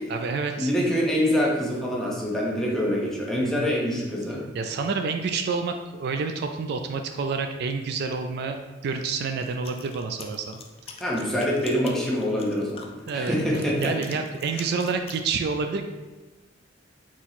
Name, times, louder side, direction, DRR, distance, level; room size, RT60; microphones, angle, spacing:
voice 1, 0.0-0.7 3.4-3.7 4.5-10.6 13.1-13.3 13.8-15.8, right 4 dB, 60° right, 6 dB, 0.3 m, -28 dB
voice 2, 0.6-4.4 11.0-14.0 14.5-14.7, equal, ahead, -4 dB, 0.8 m, -25 dB
sound 1, 9.4-15.2, left 5 dB, 30° left, 0.4 m, -44 dB
4.3 x 3.0 x 4.0 m, 1.2 s
head